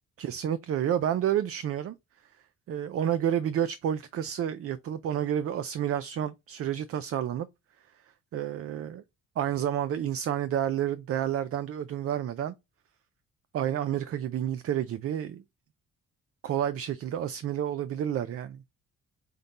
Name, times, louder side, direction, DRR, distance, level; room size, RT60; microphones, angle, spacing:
voice 1, 0.2-1.9 2.7-7.5 8.3-9.0 9.4-12.5 13.5-15.4 16.4-18.6, right 10 dB, 50° right, 0.4 m, -30 dB
5.0 x 2.2 x 4.0 m
cardioid pair, 90°, 30 cm